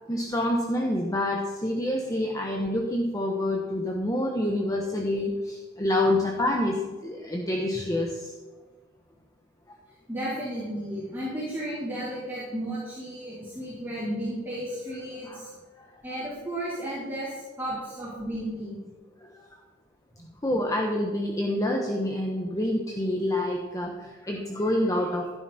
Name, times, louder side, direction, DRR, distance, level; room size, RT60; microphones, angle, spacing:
voice 1, 0.1-8.5 15.3-15.5 15.8-15.9 19.2-19.4 20.4-25.3, left 1 dB, 20° left, 1 dB, 1.1 m, -27 dB
voice 2, 10.1-15.5 16.0-18.8, right 1 dB, 10° right, -10 dB, 4.2 m, -33 dB
16.0 x 9.8 x 4.3 m, 1.3 s
head